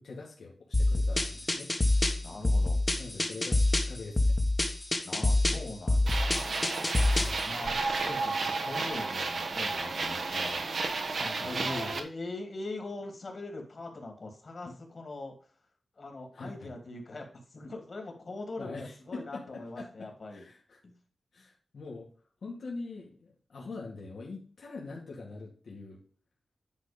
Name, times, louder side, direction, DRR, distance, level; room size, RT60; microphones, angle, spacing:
voice 1, 0.0-1.7 3.0-4.3 7.1-7.4 11.4-12.0 14.7-14.8 16.3-16.7 18.6-20.8 21.3-22.1 22.4-26.0, left 3 dB, 75° left, -3 dB, 2.2 m, -43 dB
sound 1, 0.7-7.4, left 2 dB, 20° left, 1.3 m, -26 dB
voice 2, 2.2-2.8 5.0-6.8 7.4-10.6 11.2-15.3 15.9-20.4 20.8-20.9, left 2 dB, 50° left, 3 dB, 2.6 m, -42 dB
sound 2, 6.1-12.0, right 3 dB, 60° right, 1.2 m, -32 dB
10.0 x 4.2 x 5.2 m, 0.43 s
wide cardioid pair, 140°, 0 cm